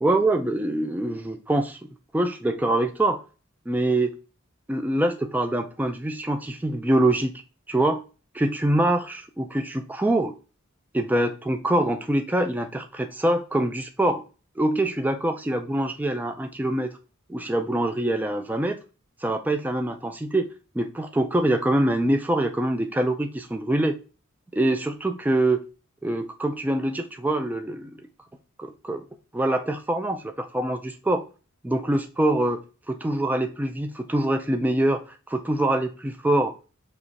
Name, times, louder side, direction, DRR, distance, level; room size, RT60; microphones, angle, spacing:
voice 1, 0.0-1.8 2.1-3.2 3.7-4.1 4.7-7.4 7.7-8.0 8.3-10.3 10.9-14.2 14.6-16.9 17.3-18.8 19.2-20.5 20.8-24.0 24.5-25.6 26.0-27.9 28.6-29.0 29.3-31.3 31.6-32.6 32.9-36.5, right 1 dB, 10° right, 6 dB, 0.3 m, -24 dB
4.9 x 2.4 x 4.0 m, 0.32 s
head